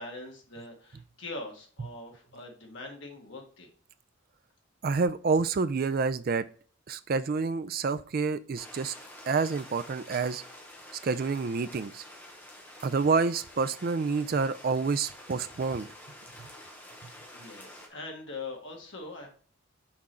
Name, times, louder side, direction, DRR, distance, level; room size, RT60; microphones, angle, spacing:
voice 1, 0.0-3.7 17.1-19.3, left 2 dB, 60° left, 1 dB, 1.5 m, -42 dB
voice 2, 4.8-6.4 6.9-8.9 9.3-10.4 11.0-12.0 12.8-15.9, right 4 dB, 45° right, 12 dB, 0.3 m, -28 dB
sound 1, 8.6-17.9, left 1 dB, 10° left, 0.9 m, -49 dB
6.0 x 3.7 x 4.2 m, 0.43 s
head